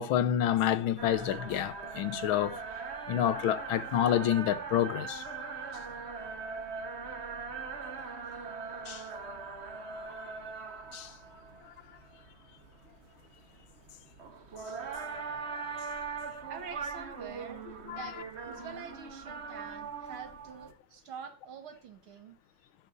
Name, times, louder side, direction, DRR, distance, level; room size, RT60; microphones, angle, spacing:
voice 1, 0.0-2.6 3.1-5.2 8.9-9.0 10.2-10.3 10.9-11.1 15.9-16.0 17.9-18.1, left 10 dB, 75° left, 1.6 m, -28 dB
sound 1, 1.0-20.7, right 5 dB, 35° right, 1.3 m, -41 dB
voice 2, 16.5-17.6 17.9-22.4, right 6 dB, 75° right, 2.5 m, -46 dB
15.5 x 10.5 x 2.6 m
omnidirectional pair, 2.3 m